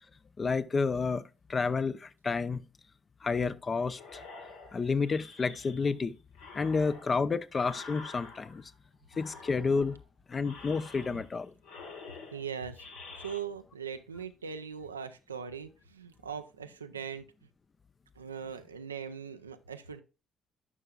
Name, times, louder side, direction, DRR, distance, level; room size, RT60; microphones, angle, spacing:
voice 1, 0.4-1.2 1.5-2.6 3.2-4.2 4.7-6.1 6.5-8.6 9.2-9.9 10.3-11.5, left 4 dB, 35° left, 0.6 m, -30 dB
sound 1, 3.9-6.0 6.3-8.7 9.1-10.0 10.4-11.4 11.6-13.4, left 4 dB, 75° left, 1.4 m, -48 dB
voice 2, 12.3-12.9 13.2-17.3 18.2-20.0, right 7 dB, 90° right, 0.4 m, -40 dB
11.0 x 5.5 x 2.3 m
figure-of-eight pair, 45°, 0 cm